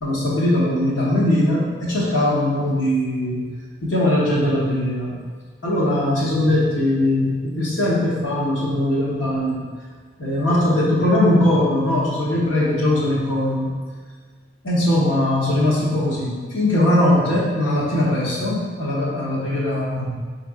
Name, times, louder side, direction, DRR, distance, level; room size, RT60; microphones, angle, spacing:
voice 1, 0.0-3.5 3.8-5.2 5.6-9.6 10.2-13.8 14.6-20.1, left 1 dB, 90° left, -6 dB, 1.2 m, -20 dB
5.6 x 3.4 x 2.4 m, 1.5 s
head